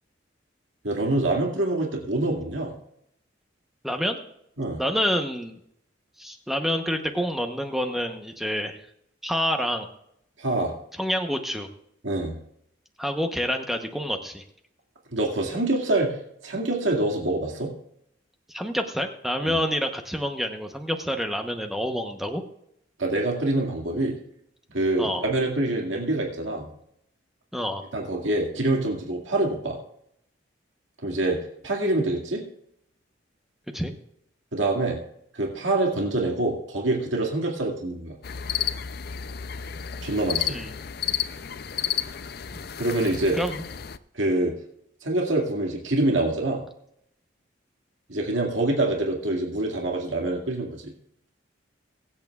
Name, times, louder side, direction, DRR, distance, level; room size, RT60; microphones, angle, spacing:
voice 1, 0.8-2.7 4.6-4.8 10.4-10.7 12.0-12.4 15.1-16.2 16.4-17.7 19.5-19.6 23.0-24.2 24.7-26.7 27.9-29.8 31.0-31.4 31.6-32.4 34.5-35.0 35.3-38.2 40.0-40.6 42.8-43.4 44.1-44.5 45.0-46.6 48.1-50.8, right 2 dB, 85° right, -1 dB, 2.1 m, -25 dB
voice 2, 3.8-4.3 4.8-5.6 6.2-8.8 9.2-9.9 11.0-11.7 13.0-14.4 18.5-22.4 25.0-25.3 27.5-27.8 33.7-33.9 40.5-40.7 43.3-43.6, equal, ahead, 4 dB, 0.8 m, -28 dB
sound 1, 38.2-44.0, left 9 dB, 50° left, 0.5 m, -31 dB
23.0 x 8.5 x 2.4 m, 0.74 s
head